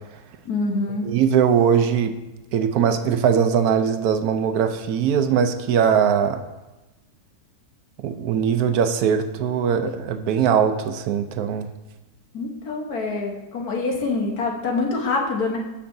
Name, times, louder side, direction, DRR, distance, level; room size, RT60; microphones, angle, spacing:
voice 1, 0.4-1.1 12.3-15.6, left 3 dB, 70° left, 0 dB, 1.6 m, -25 dB
voice 2, 1.0-2.1 2.5-6.4 8.0-11.7, right 7 dB, 70° right, 7 dB, 1.1 m, -20 dB
13.5 x 5.7 x 2.6 m, 1.1 s
omnidirectional pair, 1.7 m